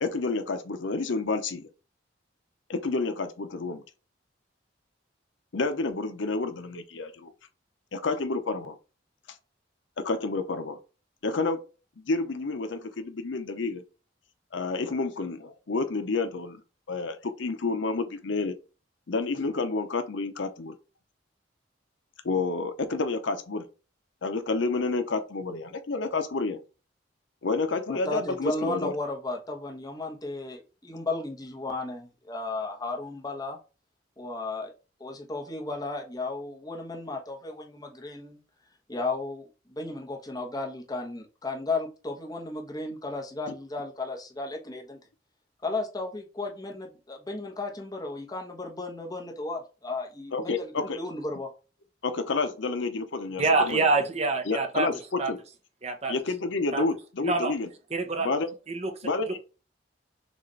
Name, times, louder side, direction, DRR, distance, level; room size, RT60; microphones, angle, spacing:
voice 1, 0.0-1.7 2.7-3.8 5.5-7.3 7.9-8.8 10.0-10.8 11.2-11.6 12.0-13.8 14.5-16.6 16.9-18.5 19.1-20.7 22.2-23.6 24.2-26.6 27.4-28.9 43.5-43.6 50.3-51.0 52.0-53.8 54.5-54.9 55.3-55.4 56.1-57.7 58.2-58.5 59.0-59.4, left 3 dB, 80° left, 0.7 m, -29 dB
voice 2, 27.9-33.6 34.2-34.7 35.0-38.4 38.9-45.0 45.6-51.5, left 2 dB, 20° left, 1.0 m, -34 dB
voice 3, 53.4-54.9 55.2-55.3 55.8-56.1 56.7-56.8 57.2-57.5 57.9-58.3 58.7-59.4, right 3 dB, 35° right, 0.7 m, -26 dB
6.3 x 2.5 x 3.2 m
head